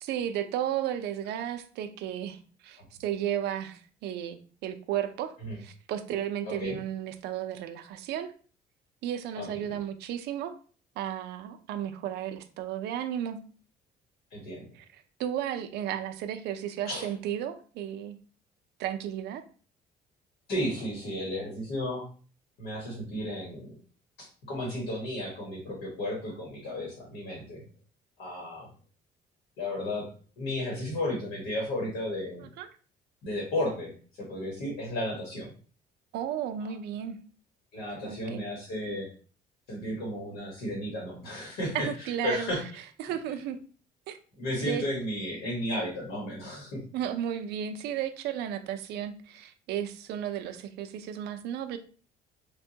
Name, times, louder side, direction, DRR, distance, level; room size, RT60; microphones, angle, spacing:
voice 1, 0.0-8.3 9.0-10.6 11.0-13.4 14.7-18.2 18.8-19.4 32.4-32.7 36.1-37.2 38.0-38.4 41.7-42.5 43.0-43.6 44.1-44.2 44.6-44.8 46.9-51.8, right 10 dB, 80° right, 9 dB, 0.4 m, -34 dB
voice 2, 6.4-6.8 9.4-9.8 14.3-14.7 16.8-17.1 20.5-22.0 22.6-23.7 24.2-27.6 28.2-28.7 29.6-30.1 30.4-32.5 33.2-33.9 34.3-35.5 36.6-36.7 37.7-39.1 39.7-41.9 42.2-42.6 44.4-46.8, left 1 dB, 90° left, -3 dB, 1.3 m, -33 dB
3.4 x 2.2 x 2.7 m, 0.40 s
cardioid pair, 110°, 17 cm